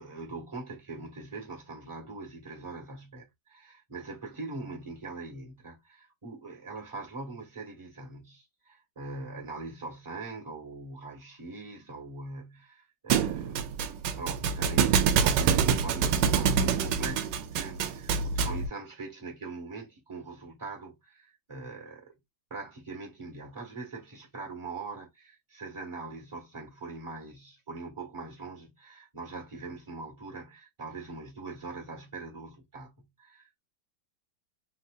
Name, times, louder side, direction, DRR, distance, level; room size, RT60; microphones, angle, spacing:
voice 1, 0.0-22.1 22.5-33.6, right 3 dB, 20° right, 1.3 m, -42 dB
Thump thud, 13.1-18.7, right 7 dB, 80° right, 1.3 m, -26 dB
3.9 x 2.7 x 2.4 m
omnidirectional pair, 1.9 m